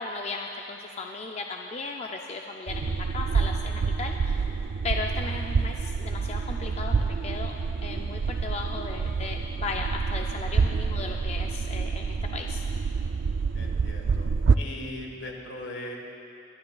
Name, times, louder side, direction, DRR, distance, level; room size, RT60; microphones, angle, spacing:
voice 1, 0.0-4.5 4.8-7.5 7.8-13.0, left 3 dB, 35° left, 2 dB, 0.4 m, -36 dB
sound 1, 2.7-14.6, right 5 dB, 80° right, 0.4 m, -27 dB
voice 2, 13.5-14.3 14.6-16.0, left 1 dB, 75° left, 0 dB, 1.6 m, -39 dB
22.5 x 11.0 x 2.3 m, 3.0 s
head